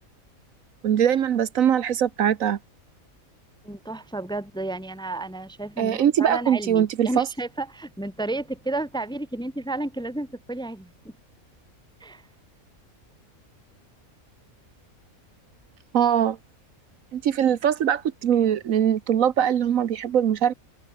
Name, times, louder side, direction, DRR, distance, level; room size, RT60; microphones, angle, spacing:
voice 1, 0.8-2.6 5.8-7.3 15.9-16.4 17.1-20.5, right 9 dB, 70° right, 1.3 m, -22 dB
voice 2, 3.6-11.1 12.0-12.2, right 2 dB, 5° left, 1.0 m, -32 dB
omnidirectional pair, 1.5 m